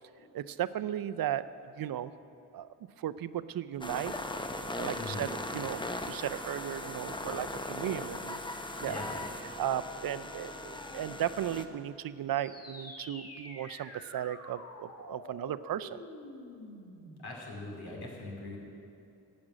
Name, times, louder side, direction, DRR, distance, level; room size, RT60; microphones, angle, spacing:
voice 1, 0.3-1.4 1.8-2.1 2.5-2.7 3.0-4.1 4.8-8.4 8.8-9.0 9.6-16.0, right 11 dB, 60° right, 14 dB, 0.5 m, -35 dB
sound 1, 3.8-11.7, left 1 dB, 10° left, 0.7 m, -39 dB
voice 2, 4.9-5.3 8.9-9.1 17.2-18.6, left 2 dB, 65° left, -1 dB, 2.8 m, -41 dB
sound 2, 12.3-17.3, left 1 dB, 35° left, 2.0 m, -48 dB
12.0 x 5.3 x 8.8 m, 2.7 s
cardioid pair, 55°, 40 cm